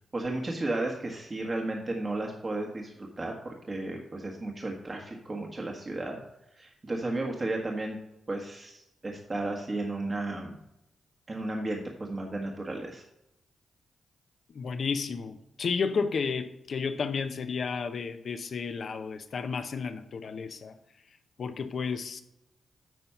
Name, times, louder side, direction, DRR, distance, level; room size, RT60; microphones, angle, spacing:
voice 1, 0.1-6.2 6.5-8.0 8.3-10.6 11.3-13.0, right 2 dB, 40° right, 0 dB, 1.5 m, -34 dB
voice 2, 14.5-20.7 21.4-22.2, left 5 dB, 65° left, 9 dB, 0.8 m, -32 dB
9.2 x 4.5 x 5.6 m, 0.85 s
supercardioid pair, 45°, 0 cm